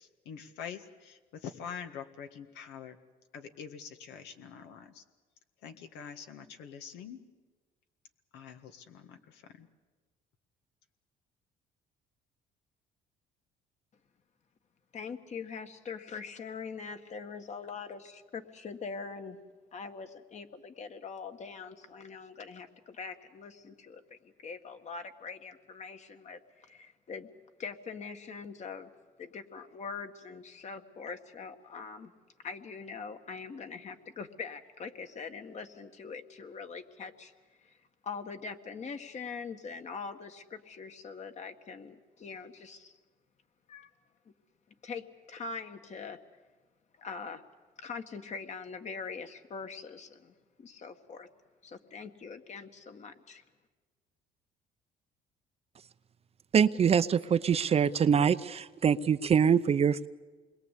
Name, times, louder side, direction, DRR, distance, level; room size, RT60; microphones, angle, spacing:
voice 1, 0.0-3.0 3.3-5.0 5.6-7.2 8.3-9.7, left 7 dB, 85° left, 6 dB, 1.8 m, -45 dB
voice 2, 14.9-19.4 19.7-27.3 27.6-28.9 29.2-32.1 32.4-37.3 37.6-37.8 38.0-43.0 43.7-43.9 44.8-46.2 47.0-47.4 47.8-51.3 51.6-53.4, left 5 dB, 45° left, 7 dB, 1.8 m, -43 dB
voice 3, 56.5-60.1, right 7 dB, 35° right, 12 dB, 0.7 m, -24 dB
27.5 x 22.0 x 8.4 m, 1.3 s
cardioid pair, 110°, 17 cm